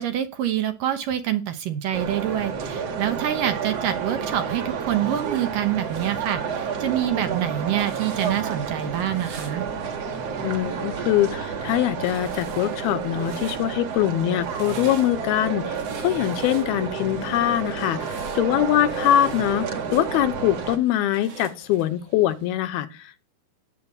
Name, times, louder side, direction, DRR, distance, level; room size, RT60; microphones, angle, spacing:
voice 1, 0.0-9.7, right 11 dB, 70° right, 8 dB, 2.4 m, -26 dB
sound 1, 1.9-20.8, right 6 dB, 45° right, 2.6 m, -30 dB
sound 2, 4.6-22.6, right 5 dB, 85° right, 5.5 m, -46 dB
voice 2, 10.4-23.2, left 12 dB, 75° left, 11 dB, 2.7 m, -23 dB
18.0 x 8.0 x 8.8 m, 0.38 s
omnidirectional pair, 4.7 m